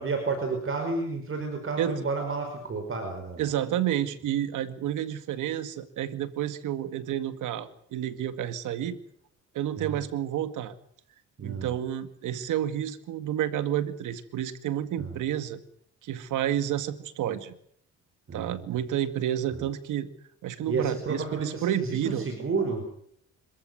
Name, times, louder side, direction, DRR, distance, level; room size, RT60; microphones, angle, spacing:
voice 1, 0.0-3.5 9.8-10.0 11.4-11.7 15.0-15.1 18.3-18.7 19.5-19.7 20.7-22.8, right 4 dB, 45° right, 5 dB, 5.2 m, -31 dB
voice 2, 3.4-9.0 9.5-10.7 11.4-15.6 16.0-17.6 18.3-20.1 20.4-22.3, right 11 dB, 80° right, 11 dB, 2.1 m, -30 dB
26.5 x 14.5 x 9.4 m, 0.68 s
cardioid pair, 90°, 30 cm